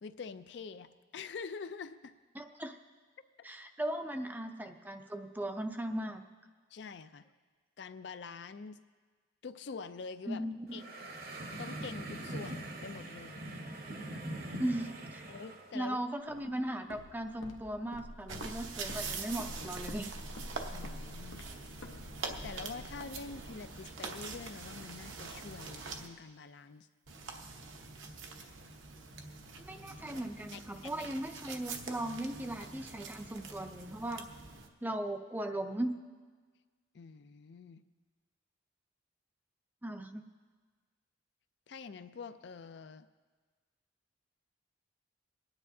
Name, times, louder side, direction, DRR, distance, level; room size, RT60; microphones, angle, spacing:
voice 1, 0.0-2.1 6.7-7.2 7.8-8.8 9.4-10.4 10.7-10.8 11.5-13.4 15.3-16.0 20.7-21.4 22.4-26.9 29.8-30.2 30.5-31.1 36.9-37.8 41.7-43.1, left 5 dB, 60° left, 11 dB, 0.4 m, -46 dB
voice 2, 2.3-2.8 3.4-6.2 10.3-10.8 14.6-15.2 15.7-20.1 29.6-34.2 34.8-35.9 39.8-40.2, right 1 dB, 10° right, 6 dB, 0.4 m, -38 dB
sound 1, 10.7-15.7, right 1 dB, 50° right, 0.9 m, -42 dB
Walk footsteps, 16.3-24.2, left 1 dB, 80° left, 0.8 m, -48 dB
sound 2, 18.3-26.1 27.1-34.7, right 4 dB, 75° right, 1.0 m, -44 dB
28.0 x 9.7 x 2.7 m, 1.5 s
head